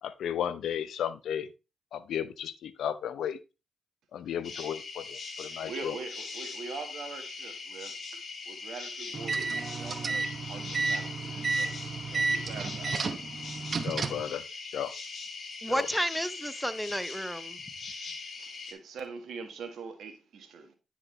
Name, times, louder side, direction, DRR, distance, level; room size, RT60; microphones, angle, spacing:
voice 1, 0.0-1.5 1.9-3.4 4.1-6.0 13.8-14.9 15.7-15.9, left 9 dB, 75° left, 0.6 m, -34 dB
sound 1, 4.4-18.7, left 4 dB, 55° left, 2.1 m, -41 dB
voice 2, 5.5-11.8 12.1-13.2 18.4-20.8, right 4 dB, 70° right, 1.6 m, -43 dB
sound 2, 9.1-14.3, right 4 dB, 50° right, 0.8 m, -32 dB
voice 3, 15.6-17.6, equal, ahead, 0.7 m, -31 dB
9.7 x 5.0 x 3.2 m
supercardioid pair, 45°, 0 cm